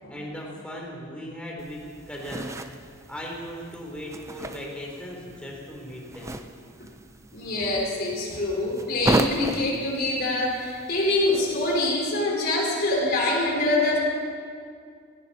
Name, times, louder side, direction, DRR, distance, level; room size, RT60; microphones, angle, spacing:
voice 1, 0.1-6.4, equal, 5° left, -2 dB, 3.4 m, -38 dB
sound 1, 1.6-11.9, right 1 dB, 15° right, 0.5 m, -34 dB
voice 2, 7.3-14.0, left 2 dB, 45° left, -3 dB, 4.4 m, -25 dB
19.5 x 17.5 x 4.2 m, 2.2 s
head